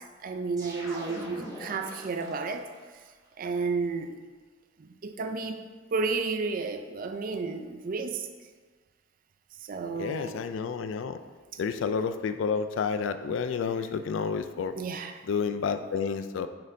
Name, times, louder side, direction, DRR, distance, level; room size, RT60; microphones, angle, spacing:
voice 1, 0.0-3.0 3.4-4.2 4.8-8.3 9.6-10.4 14.8-15.2, right 4 dB, 45° right, 7 dB, 0.4 m, -32 dB
sound 1, 0.6-2.8, equal, 20° right, 1.1 m, -42 dB
voice 2, 10.0-11.2 11.6-14.8 15.3-16.5, left 5 dB, 80° left, 10 dB, 0.3 m, -30 dB
8.5 x 4.2 x 2.6 m, 1.4 s
head